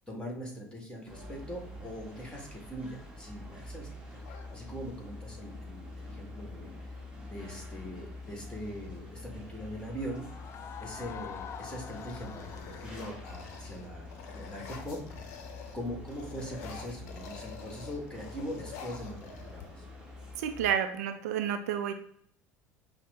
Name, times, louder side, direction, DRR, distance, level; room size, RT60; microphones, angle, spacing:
voice 1, 0.0-6.9 7.3-10.2 10.8-15.2 15.7-19.9, equal, 10° left, 0 dB, 1.5 m, -42 dB
sound 1, 1.1-20.7, left 2 dB, 10° right, 1.2 m, -46 dB
sound 2, 4.2-5.2 6.9-7.0 7.3-7.8 8.4-9.9 10.5-10.9 11.3-15.8 16.1-20.0, left 6 dB, 65° left, 0.7 m, -49 dB
sound 3, 10.1-14.8, left 8 dB, 35° left, 0.4 m, -46 dB
voice 2, 20.4-21.9, right 9 dB, 70° right, 8 dB, 0.4 m, -30 dB
5.6 x 2.1 x 3.3 m, 0.65 s
hypercardioid pair, 70°, 9 cm